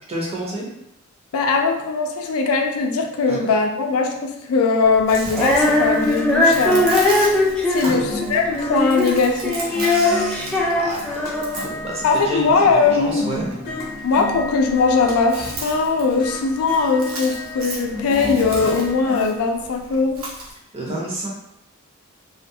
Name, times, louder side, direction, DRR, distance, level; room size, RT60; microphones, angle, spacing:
voice 1, 0.1-0.7 3.3-3.4 7.8-8.1 9.8-10.5 10.8-13.5 20.7-21.3, right 1 dB, 30° right, -3 dB, 0.7 m, -30 dB
voice 2, 1.3-6.9 7.7-9.7 12.0-13.2 14.0-20.2, left 4 dB, 90° left, 3 dB, 0.4 m, -20 dB
Chewing mastication, 4.8-20.5, right 2 dB, 75° right, 0.7 m, -36 dB
Female singing, 5.3-11.7, left 2 dB, 5° left, 0.3 m, -20 dB
sound 1, 5.5-19.3, left 2 dB, 45° left, 0.7 m, -33 dB
2.4 x 2.2 x 2.6 m, 0.79 s
head